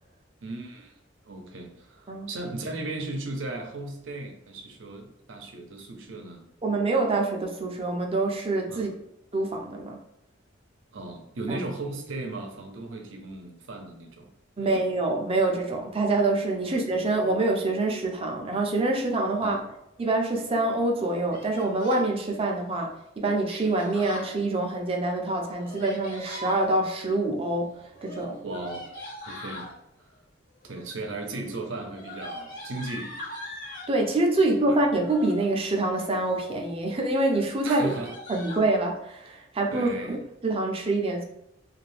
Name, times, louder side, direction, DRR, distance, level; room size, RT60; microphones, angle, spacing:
voice 1, 0.4-0.9 1.3-6.4 8.7-8.9 10.9-14.3 14.6-14.8 19.4-19.6 28.4-28.9 29.3-29.7 30.0-30.2 30.6-33.1 34.4-34.8 37.6-38.1 39.7-40.2, right 2 dB, 85° right, 3 dB, 0.6 m, -36 dB
voice 2, 6.6-8.9 9.3-10.0 11.5-11.6 14.6-19.6 20.0-27.7 28.0-28.4 33.9-37.9 38.3-40.2 40.4-41.2, right 2 dB, 30° right, 1 dB, 0.5 m, -26 dB
Yell, 21.3-22.1 23.4-24.3 25.5-26.6 27.9-29.7 30.6-31.0 31.3-33.9 34.9-35.5 36.0-36.5 36.9-37.1 37.3-37.4 37.7-38.7, left 1 dB, 45° left, 1.0 m, -41 dB
2.7 x 2.4 x 3.3 m, 0.82 s
head